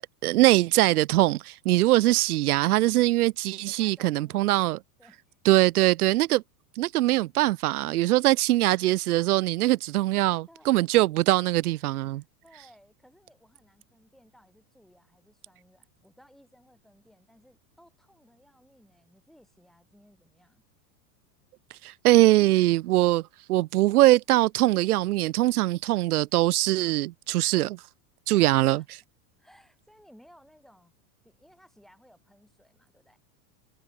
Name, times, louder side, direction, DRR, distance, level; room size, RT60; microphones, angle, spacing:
voice 1, 0.2-4.8 5.4-6.4 6.8-12.2 21.8-23.2 23.5-27.8 28.3-28.8, right 16 dB, 65° right, 1.6 m, -22 dB
voice 2, 3.7-5.4 10.2-10.9 11.7-20.6 28.3-28.9 29.4-30.9 31.2-33.2, equal, ahead, 8.0 m, -59 dB
supercardioid pair, 180°, 47 cm